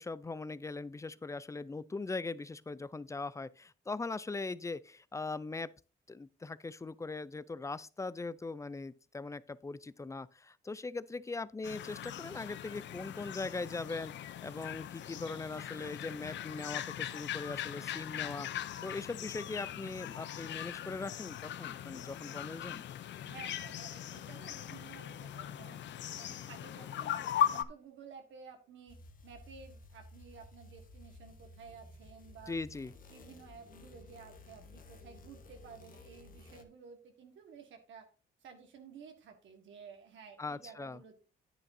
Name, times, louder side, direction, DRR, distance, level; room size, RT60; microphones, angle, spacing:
voice 1, 0.0-5.7 6.1-22.8 32.5-32.9 40.4-41.0, left 3 dB, 15° left, 0.4 m, -40 dB
sound 1, 11.6-27.6, left 10 dB, 65° left, 0.6 m, -39 dB
voice 2, 23.2-25.8 26.2-29.0 29.2-32.6 33.1-38.1 38.4-41.1, right 6 dB, 75° right, 1.6 m, -53 dB
sound 2, 28.9-36.6, left 2 dB, 45° left, 1.3 m, -55 dB
9.9 x 8.9 x 2.7 m
cardioid pair, 90°, 20 cm